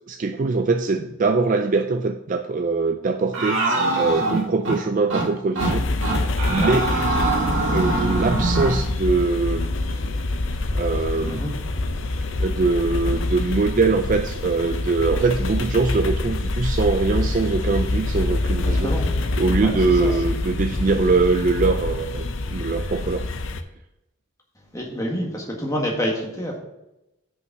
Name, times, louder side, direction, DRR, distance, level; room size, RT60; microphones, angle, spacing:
voice 1, 0.1-3.7 4.0-6.9 7.7-9.8 10.7-11.5 12.4-18.9 19.4-23.3, right 3 dB, 40° right, 6 dB, 0.4 m, -22 dB
sound 1, 3.3-4.8 5.1-5.3 5.6-5.7 6.0-8.8, right 2 dB, 60° right, 2.0 m, -23 dB
sound 2, 5.6-23.6, left 2 dB, 60° left, 0.6 m, -26 dB
voice 2, 19.6-20.1 24.7-26.6, equal, 15° left, -1 dB, 1.7 m, -27 dB
6.3 x 5.5 x 6.0 m, 0.90 s
head